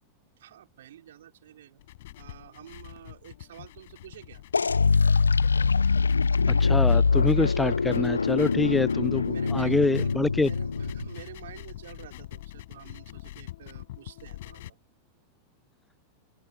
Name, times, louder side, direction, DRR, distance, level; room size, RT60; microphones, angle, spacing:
voice 1, 0.4-1.8 2.2-4.4 9.3-14.8, right 11 dB, 60° right, 3.6 m, -48 dB
sound 1, 1.8-14.7, left 16 dB, 55° left, 7.6 m, -44 dB
sound 2, 4.5-11.2, left 4 dB, 75° left, 0.4 m, -23 dB
voice 2, 6.5-10.5, left 3 dB, 10° left, 0.5 m, -26 dB
figure-of-eight pair, 90°, 0 cm